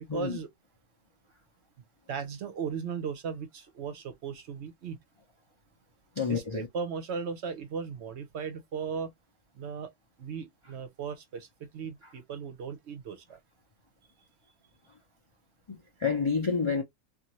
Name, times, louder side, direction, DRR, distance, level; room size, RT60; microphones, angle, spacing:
voice 1, 0.1-0.5 2.1-5.0 6.3-9.1 9.6-9.9 10.2-13.2, right 6 dB, 65° right, 0.9 m, -37 dB
voice 2, 6.2-6.7 15.7-16.8, left 5 dB, 40° left, 0.4 m, -29 dB
2.7 x 2.4 x 2.9 m
omnidirectional pair, 1.3 m